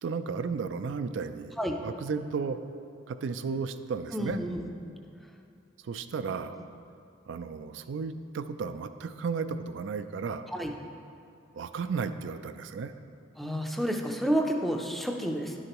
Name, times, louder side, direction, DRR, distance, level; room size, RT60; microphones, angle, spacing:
voice 1, 0.0-2.6 3.1-4.4 5.8-6.6 7.3-10.4 11.5-12.9, right 5 dB, 70° right, 10 dB, 0.4 m, -34 dB
voice 2, 4.1-4.9 10.5-10.7 13.4-15.6, equal, ahead, 2 dB, 0.4 m, -30 dB
11.0 x 6.4 x 3.0 m, 2.6 s
head